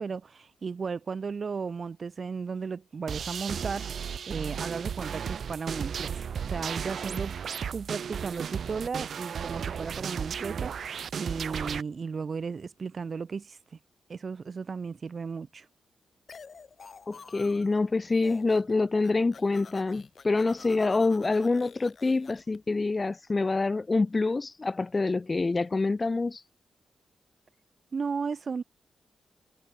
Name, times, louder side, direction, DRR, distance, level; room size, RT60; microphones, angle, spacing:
voice 1, 0.0-7.3 7.7-10.8 11.1-13.6 14.1-15.7 27.9-28.6, right 5 dB, 50° right, 1.6 m, -35 dB
sound 1, 3.1-11.8, right 7 dB, 70° right, 5.7 m, -34 dB
sound 2, 16.3-17.8 18.1-18.7 19.0-22.6, left 5 dB, 55° left, 6.2 m, -49 dB
voice 2, 17.1-26.4, left 3 dB, 30° left, 0.7 m, -26 dB
cardioid pair, 80°, 0 cm